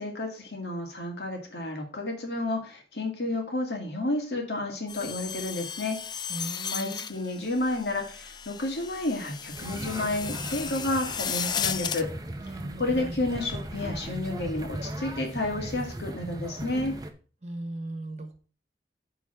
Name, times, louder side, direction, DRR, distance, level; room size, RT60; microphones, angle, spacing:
voice 1, 0.0-6.0 6.7-12.1 12.8-17.0, left 2 dB, 75° left, 2 dB, 2.2 m, -31 dB
sound 1, 4.9-12.0, left 8 dB, 25° left, 0.3 m, -35 dB
voice 2, 6.3-7.0 12.4-13.2 17.4-18.4, right 1 dB, 40° right, 7 dB, 1.2 m, -38 dB
sound 2, 9.5-17.1, right 1 dB, 20° right, 0.7 m, -37 dB
8.4 x 3.9 x 5.8 m, 0.38 s
head